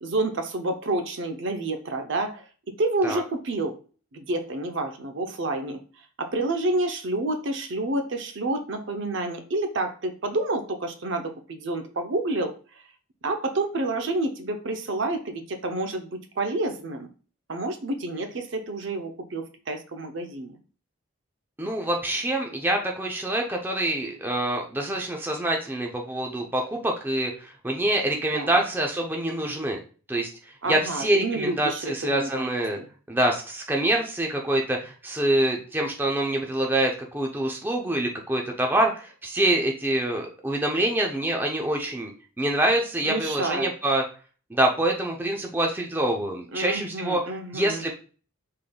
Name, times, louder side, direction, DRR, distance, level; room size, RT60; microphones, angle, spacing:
voice 1, 0.0-3.7 4.1-5.8 6.3-12.5 13.2-17.1 17.5-20.6 28.3-28.6 30.6-32.5 32.8-32.9 43.0-43.7 46.5-47.8, right 2 dB, 55° right, 6 dB, 0.6 m, -29 dB
voice 2, 21.6-29.8 30.1-30.3 30.7-32.8 33.1-42.1 42.4-44.0 44.5-47.2 47.5-47.9, right 1 dB, 10° right, 1 dB, 0.5 m, -25 dB
5.1 x 3.7 x 2.2 m, 0.38 s
head